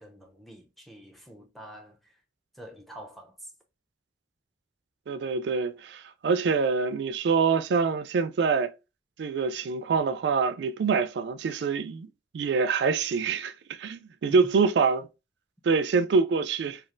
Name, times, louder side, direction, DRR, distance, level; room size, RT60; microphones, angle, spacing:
voice 1, 0.0-2.2 2.5-3.5, equal, ahead, 0.5 m, -47 dB
voice 2, 5.1-8.7 9.2-12.1 12.3-13.5 13.8-15.1 15.6-16.8, right 5 dB, 80° right, 0.3 m, -25 dB
3.1 x 2.4 x 2.5 m
head